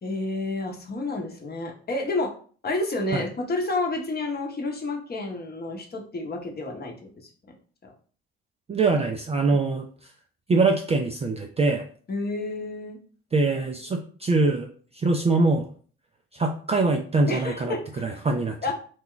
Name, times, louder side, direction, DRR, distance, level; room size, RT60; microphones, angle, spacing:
voice 1, 0.0-2.3 2.6-7.5 7.8-7.9 12.1-13.0 17.3-18.2 18.6-18.7, left 2 dB, 30° left, 1 dB, 0.9 m, -30 dB
voice 2, 8.7-9.8 10.5-11.9 13.3-14.7 14.9-15.6 16.3-17.7 18.0-18.5, right 3 dB, 20° right, 2 dB, 0.4 m, -23 dB
2.2 x 2.2 x 3.7 m, 0.43 s
hypercardioid pair, 55°, 32 cm